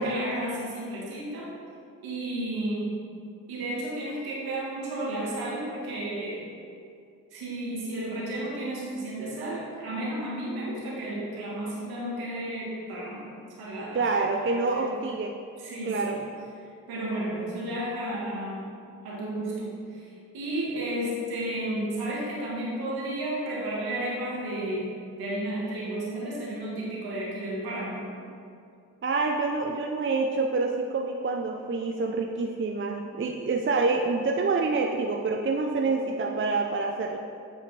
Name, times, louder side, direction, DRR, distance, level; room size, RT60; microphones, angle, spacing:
voice 1, 0.0-1.5 2.0-3.0 3.5-6.4 7.3-13.3 13.6-15.0 15.6-16.2 16.9-18.7 19.0-28.1, right 1 dB, 80° right, -6 dB, 1.6 m, -32 dB
voice 2, 13.9-15.3 15.8-16.2 29.0-37.2, right 3 dB, 35° right, 2 dB, 0.6 m, -27 dB
8.5 x 4.9 x 3.3 m, 2.5 s
supercardioid pair, 45°, 37 cm